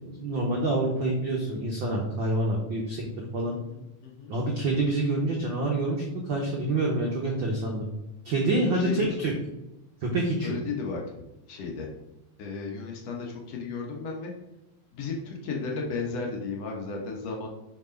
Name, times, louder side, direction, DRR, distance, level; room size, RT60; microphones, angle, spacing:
voice 1, 0.0-3.5 4.3-7.9 8.2-9.3 10.0-10.6, right 2 dB, 70° right, -1 dB, 1.1 m, -27 dB
voice 2, 3.5-4.3 8.6-9.2 10.4-11.0 11.5-11.9 12.4-14.3 14.9-17.5, left 4 dB, 65° left, 0 dB, 2.0 m, -34 dB
5.9 x 5.1 x 5.1 m, 0.93 s
omnidirectional pair, 3.5 m